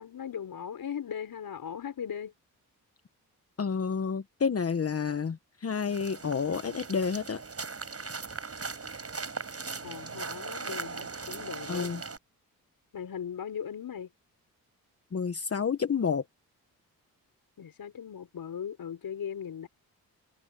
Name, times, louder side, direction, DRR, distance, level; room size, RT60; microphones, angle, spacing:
voice 1, 0.0-2.3 9.8-11.9 12.9-14.1 17.6-19.7, left 8 dB, 65° left, 5.3 m, -38 dB
voice 2, 3.6-7.4 11.7-12.0 15.1-16.2, left 6 dB, 40° left, 1.2 m, -30 dB
sound 1, 5.9-12.2, right 4 dB, 40° right, 7.2 m, -39 dB
cardioid pair, 60°, 37 cm